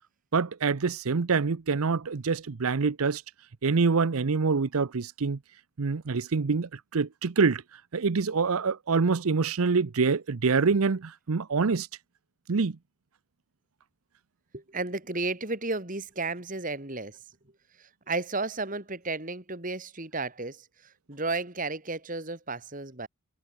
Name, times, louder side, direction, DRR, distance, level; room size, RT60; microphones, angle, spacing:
voice 1, 0.3-3.2 3.6-5.4 5.8-7.6 7.9-11.9 12.5-12.8, right 4 dB, 75° right, 0.7 m, -25 dB
voice 2, 14.5-17.2 17.8-23.1, right 3 dB, 35° right, 2.6 m, -33 dB
head